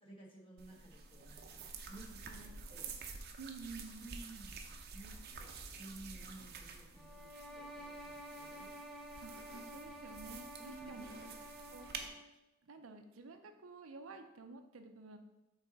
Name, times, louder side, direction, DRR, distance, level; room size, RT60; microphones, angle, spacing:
voice 1, 0.0-3.0 4.0-4.6 4.9-7.3 7.5-8.7 10.6-11.3, right 2 dB, 25° left, -3 dB, 1.3 m, -55 dB
sound 1, 0.6-12.1, right 4 dB, 50° right, 0.6 m, -50 dB
voice 2, 3.4-4.0 9.2-11.1 11.7-11.9 12.6-15.2, right 3 dB, 90° right, 6 dB, 0.6 m, -51 dB
sound 2, 7.0-12.4, right 1 dB, ahead, 0.4 m, -51 dB
5.9 x 4.1 x 4.0 m, 0.96 s
head